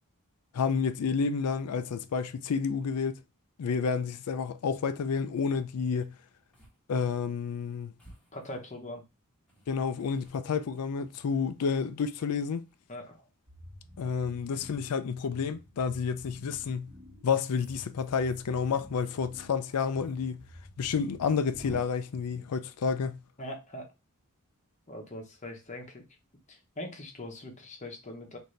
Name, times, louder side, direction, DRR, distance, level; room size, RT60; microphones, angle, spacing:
voice 1, 0.5-3.2 3.6-6.1 6.9-7.9 9.7-12.6 14.0-16.9 17.2-20.4 20.8-23.2, left 5 dB, 85° left, 0.4 m, -30 dB
sound 1, 4.4-4.5 4.7-5.1 5.9-6.1 6.5-6.8 7.1-7.2 8.0-8.9 9.5-11.7 12.2-13.0 14.7-15.0 16.2-16.6 17.3-20.2 20.4-20.5 20.8-20.9 21.5-21.8, equal, 5° left, 1.2 m, -53 dB
voice 2, 8.3-9.0 12.9-13.2 23.4-23.9 24.9-26.0 26.5-28.4, left 1 dB, 35° left, 0.9 m, -41 dB
sound 2, 13.5-22.7, left 1 dB, 40° right, 1.3 m, -52 dB
3.9 x 2.7 x 3.2 m
head